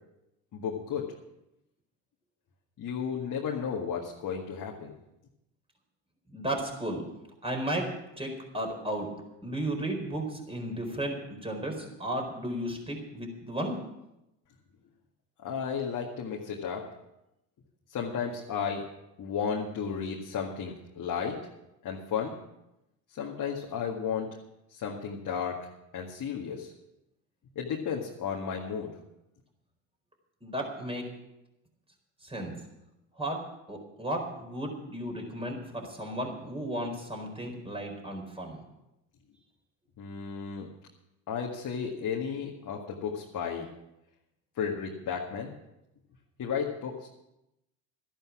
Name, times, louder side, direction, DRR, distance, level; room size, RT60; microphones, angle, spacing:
voice 1, 0.5-1.1 2.8-4.9 15.4-16.8 17.9-18.8 19.2-21.4 21.8-22.4 23.1-24.3 24.7-25.7 25.9-26.7 27.5-28.9 40.0-40.7 41.3-43.7 44.6-45.5 46.4-47.1, left 6 dB, 40° left, -1 dB, 1.9 m, -33 dB
voice 2, 6.3-7.0 7.4-7.9 8.1-9.1 9.4-13.8 30.4-31.1 32.2-32.5 33.2-38.6, right 1 dB, 10° right, 2 dB, 4.4 m, -34 dB
13.0 x 11.0 x 6.0 m, 0.89 s
hypercardioid pair, 80°, 48 cm